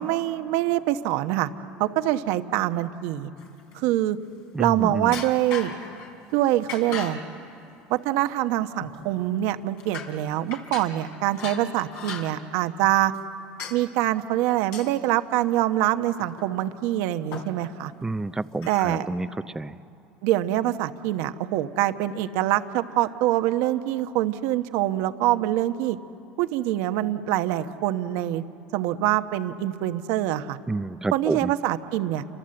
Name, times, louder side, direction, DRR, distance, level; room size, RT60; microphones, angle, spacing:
voice 1, 0.0-1.5 1.8-3.3 3.7-4.2 4.6-5.7 6.3-7.2 7.9-13.1 13.7-17.9 18.7-19.0 20.2-26.0 26.4-28.4 28.7-30.6 31.1-32.2, right 14 dB, 70° right, 9 dB, 1.0 m, -25 dB
sound 1, 3.4-4.0 5.0-6.1 6.6-7.3 8.2-8.3 8.8-9.2 9.8-10.2 10.5-12.4 13.1-13.2 13.6-13.8 14.6-14.9 16.2-16.8 17.0-17.1 17.3-17.7 18.6-18.9, left 6 dB, 65° left, 3.9 m, -38 dB
voice 2, 4.5-5.2 18.0-19.8 30.7-31.5, right 2 dB, 10° right, 14 dB, 0.6 m, -29 dB
29.0 x 25.0 x 7.8 m, 2.8 s
supercardioid pair, 95°, 5 cm